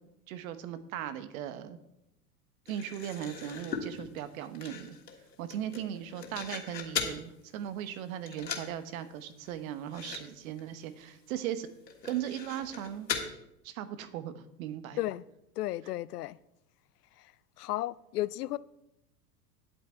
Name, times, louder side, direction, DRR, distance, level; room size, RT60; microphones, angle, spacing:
voice 1, 0.3-1.8 2.7-4.9 5.4-11.7 12.0-13.1 13.6-15.0, right 10 dB, 55° right, 1.1 m, -38 dB
sound 1, 2.7-7.2 7.6-8.0 8.3-8.7 9.0-9.1 9.4-9.5 9.9-10.2 10.5-10.6 11.1-11.2 11.9-13.3, left 6 dB, 85° left, 1.6 m, -39 dB
voice 2, 15.6-16.4 17.2-17.3 17.6-18.6, left 15 dB, 70° left, 0.5 m, -34 dB
9.0 x 8.5 x 4.4 m
hypercardioid pair, 95°, 49 cm